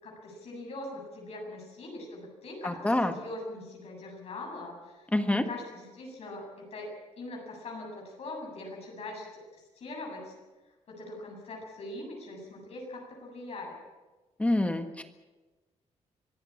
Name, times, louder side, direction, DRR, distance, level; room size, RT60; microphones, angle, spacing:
voice 1, 0.0-9.3 9.5-10.3 10.9-13.8, left 2 dB, 60° left, -1 dB, 7.7 m, -42 dB
voice 2, 2.6-3.1 5.1-5.4 14.4-15.0, left 1 dB, 10° left, 8 dB, 1.5 m, -26 dB
24.5 x 15.5 x 8.7 m, 1.2 s
cardioid pair, 140°, 12 cm